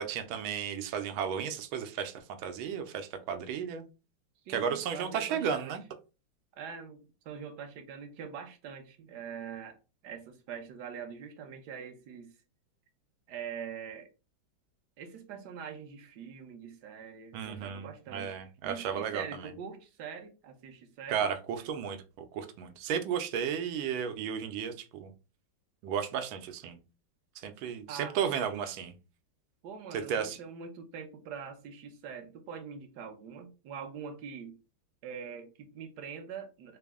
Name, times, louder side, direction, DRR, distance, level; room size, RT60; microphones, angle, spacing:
voice 1, 0.0-3.9 4.5-5.8 17.3-19.5 21.1-25.1 25.8-26.8 27.4-28.9 29.9-30.4, right 7 dB, 90° right, 8 dB, 1.4 m, -34 dB
voice 2, 4.4-5.7 6.5-9.8 10.0-12.3 13.3-14.1 15.0-18.4 18.6-21.3 27.9-28.2 29.6-34.6 35.0-36.8, right 7 dB, 65° right, 5 dB, 1.2 m, -43 dB
4.1 x 2.0 x 3.4 m, 0.31 s
omnidirectional pair, 2.2 m